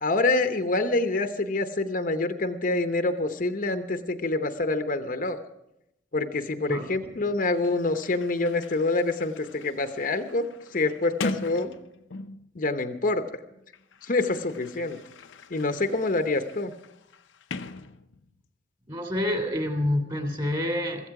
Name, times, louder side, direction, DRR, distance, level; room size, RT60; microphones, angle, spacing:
voice 1, 0.0-5.4 6.1-10.5 10.7-11.8 12.5-13.2 14.0-15.0 15.5-16.7, left 2 dB, 45° left, 7 dB, 0.8 m, -26 dB
voice 2, 6.7-7.1 18.9-21.1, left 1 dB, 25° right, 4 dB, 2.6 m, -28 dB
Sliding door, 7.2-7.3 7.5-12.6 13.5-18.5, left 3 dB, 90° left, 0.7 m, -40 dB
16.0 x 14.5 x 4.8 m, 0.83 s
head